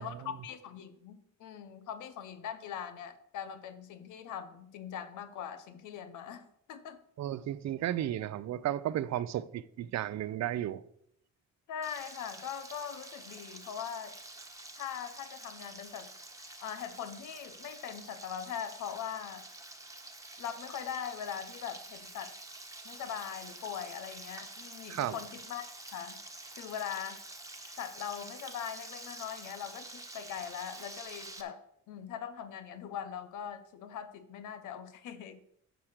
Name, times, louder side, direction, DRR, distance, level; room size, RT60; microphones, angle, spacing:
voice 1, 0.0-7.0 11.7-14.2 14.8-16.1 16.5-19.4 20.4-22.3 22.8-25.6 25.9-26.2 26.6-27.2 27.7-31.6 31.9-35.4, left 8 dB, 80° left, 0.9 m, -41 dB
voice 2, 7.2-10.8 24.9-25.2, right 12 dB, 60° right, 0.6 m, -33 dB
Frying (food), 11.8-31.4, right 2 dB, 10° right, 1.2 m, -48 dB
9.0 x 4.8 x 6.5 m
cardioid pair, 90°, 30 cm